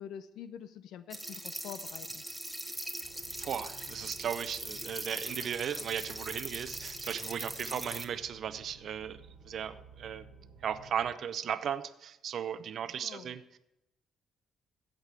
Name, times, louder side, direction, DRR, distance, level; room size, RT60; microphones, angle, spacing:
voice 1, 0.0-2.2 7.6-7.9 12.9-13.3, left 9 dB, 85° left, 13 dB, 0.5 m, -46 dB
sound 1, 1.1-8.0, right 1 dB, 5° right, 1.2 m, -41 dB
sound 2, 3.0-11.1, right 3 dB, 80° right, 1.7 m, -54 dB
voice 2, 3.4-9.2 9.4-10.2 10.6-13.6, right 8 dB, 65° right, 13 dB, 0.7 m, -36 dB
15.5 x 5.3 x 7.4 m, 0.88 s
cardioid pair, 90°, 0 cm